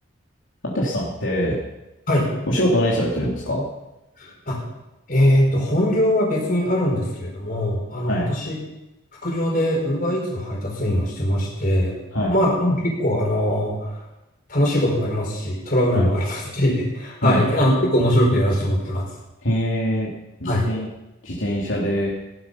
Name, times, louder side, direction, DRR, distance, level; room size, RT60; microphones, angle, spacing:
voice 1, 0.6-1.5 2.5-3.6 8.1-8.3 12.1-12.3 15.9-16.1 17.2-17.4 19.4-20.1 20.4-20.9 21.2-22.1, equal, 65° left, -5 dB, 2.8 m, -23 dB
voice 2, 4.2-4.6 5.1-8.6 9.2-12.0 12.3-14.0 14.5-19.1 20.5-20.7, equal, 40° left, -1 dB, 5.0 m, -21 dB
17.0 x 11.5 x 5.6 m, 0.97 s
head